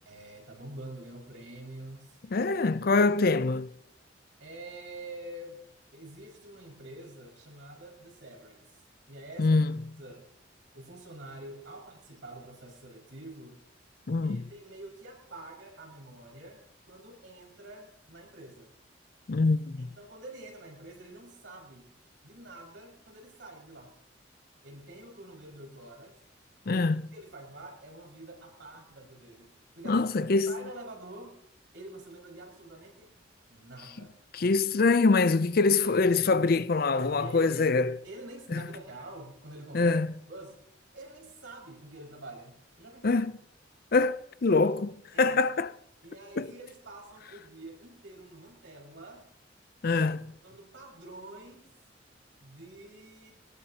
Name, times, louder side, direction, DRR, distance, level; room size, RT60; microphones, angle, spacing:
voice 1, 0.0-2.2 3.0-3.1 4.4-5.6 5.9-8.8 9.1-9.6 10.0-10.2 10.7-13.6 14.2-18.7 19.8-21.9 22.2-23.9 24.6-26.2 26.7-26.9 27.1-30.1 30.5-31.4 31.7-33.1 33.5-34.1 36.9-37.7 38.0-40.0 40.3-40.6 40.9-43.2 45.1-45.5 46.0-49.3 50.0-50.1 50.4-51.7 52.4-53.3, right 2 dB, 90° right, 5.7 m, -47 dB
voice 2, 2.3-3.7 9.4-9.8 14.1-14.4 19.3-19.9 26.7-27.0 29.9-30.6 34.3-37.9 38.5-38.6 39.7-40.1 43.0-43.3 43.9-45.7 46.4-46.5 49.8-50.2, left 3 dB, 50° left, 0.5 m, -24 dB
20.0 x 19.5 x 2.9 m
head